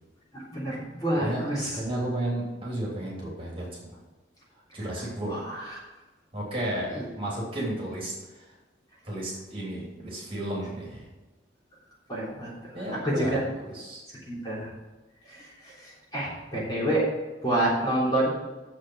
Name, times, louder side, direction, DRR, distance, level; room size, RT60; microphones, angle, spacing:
voice 1, 0.3-1.8 5.3-5.8 6.9-7.1 12.1-12.5 12.8-13.4 14.3-14.7 15.3-17.0 17.4-18.3, right 1 dB, 20° left, -7 dB, 3.5 m, -28 dB
voice 2, 1.7-3.6 4.7-5.3 6.3-8.4 9.0-11.1 12.7-14.0, right 1 dB, 30° right, -4 dB, 3.1 m, -33 dB
7.3 x 6.4 x 7.4 m, 1.2 s
head